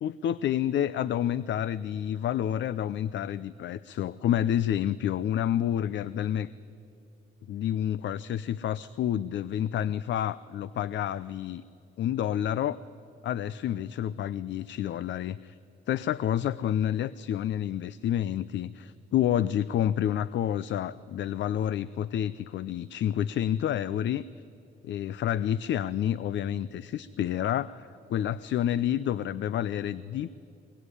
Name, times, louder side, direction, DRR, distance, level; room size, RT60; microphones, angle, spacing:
voice 1, 0.0-6.5 7.5-11.6 12.0-12.8 13.2-15.6 15.9-24.2 24.8-30.3, left 10 dB, 65° left, 17 dB, 0.6 m, -29 dB
23.0 x 22.0 x 9.8 m, 2.6 s
cardioid pair, 90°, 20 cm